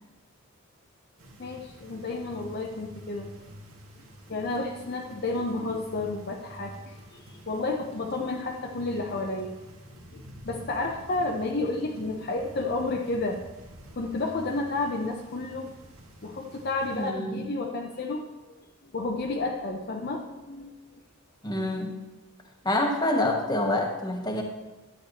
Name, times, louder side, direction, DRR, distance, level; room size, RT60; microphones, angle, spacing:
sound 1, 1.2-17.1, equal, 70° right, 1.8 m, -48 dB
voice 1, 1.4-3.3 4.3-9.5 10.1-13.4 14.0-15.7 16.2-18.6 18.8-21.0, left 2 dB, 45° left, 2 dB, 0.6 m, -31 dB
voice 2, 16.9-17.5 21.4-22.0 22.6-24.4, left 1 dB, 20° left, 2 dB, 1.0 m, -27 dB
11.5 x 8.5 x 2.9 m, 1.2 s
head